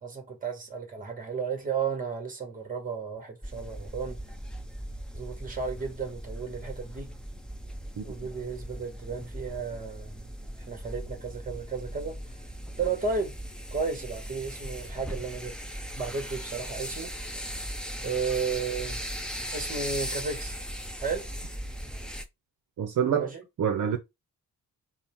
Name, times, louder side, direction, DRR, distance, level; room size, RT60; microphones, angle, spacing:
voice 1, 0.0-4.2 5.1-7.1 8.0-10.3 10.7-12.2 12.8-13.3 13.7-15.5 16.0-17.3 18.0-19.0 19.5-20.6 21.0-21.2 23.2-23.4, right 5 dB, 25° right, 1.2 m, -33 dB
sound 1, 3.4-22.2, equal, ahead, 0.4 m, -38 dB
voice 2, 22.8-23.3 23.6-24.0, right 8 dB, 60° right, 0.6 m, -26 dB
3.7 x 2.2 x 4.3 m
wide cardioid pair, 175°, 36 cm